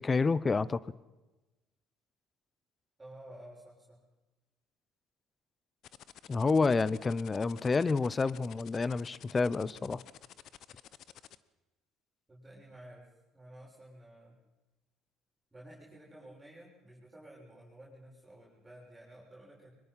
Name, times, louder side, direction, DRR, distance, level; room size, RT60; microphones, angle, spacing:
voice 1, 0.0-0.8 6.3-10.0, left 4 dB, 25° left, 20 dB, 0.7 m, -29 dB
voice 2, 3.0-4.0 12.3-14.3 15.5-19.7, right 1 dB, 15° right, -6 dB, 6.8 m, -52 dB
sound 1, 5.8-11.4, left 11 dB, 60° left, 0.8 m, -52 dB
23.5 x 21.0 x 5.7 m, 1.1 s
supercardioid pair, 80°, 0 cm